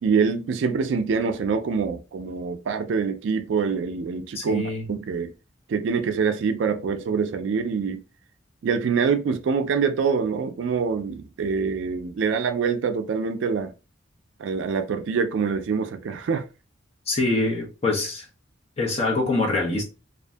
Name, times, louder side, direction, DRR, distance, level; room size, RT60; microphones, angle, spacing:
voice 1, 0.0-4.6 4.9-5.3 5.7-8.0 8.6-13.7 14.4-16.4, right 5 dB, 65° right, 0.3 m, -25 dB
voice 2, 4.3-4.9 17.1-18.2 18.8-19.8, left 2 dB, 30° left, 0.6 m, -24 dB
2.6 x 2.4 x 2.2 m
head